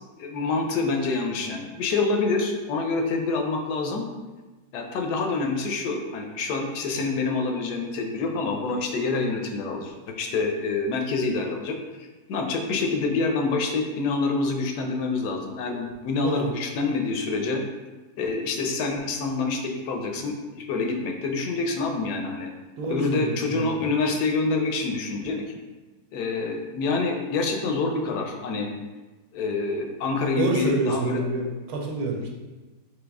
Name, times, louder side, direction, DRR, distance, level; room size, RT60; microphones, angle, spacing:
voice 1, 0.2-4.0 4.7-11.8 12.3-17.6 18.2-22.5 22.9-25.5 26.1-28.7 29.3-31.2, left 3 dB, 75° left, 3 dB, 1.1 m, -26 dB
voice 2, 22.8-23.9 30.4-32.3, right 2 dB, 70° right, 0 dB, 1.1 m, -28 dB
3.9 x 3.1 x 3.4 m, 1.2 s
omnidirectional pair, 1.7 m